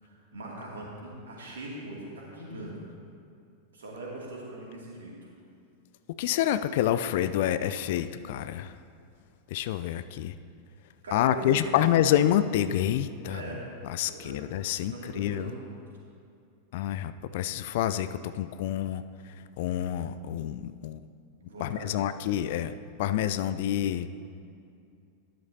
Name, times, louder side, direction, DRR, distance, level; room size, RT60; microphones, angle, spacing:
voice 1, 0.0-2.8 3.7-5.3 11.0-11.7 13.3-13.6 14.1-14.4 14.8-15.7 21.4-22.1, right 2 dB, 65° right, -3 dB, 2.5 m, -41 dB
voice 2, 6.2-8.7 9.5-10.3 11.1-13.4 13.8-15.5 16.7-19.0 19.6-21.1 21.6-24.1, left 11 dB, 50° left, 12 dB, 0.3 m, -28 dB
13.0 x 11.0 x 2.8 m, 2.4 s
figure-of-eight pair, 90°, 0 cm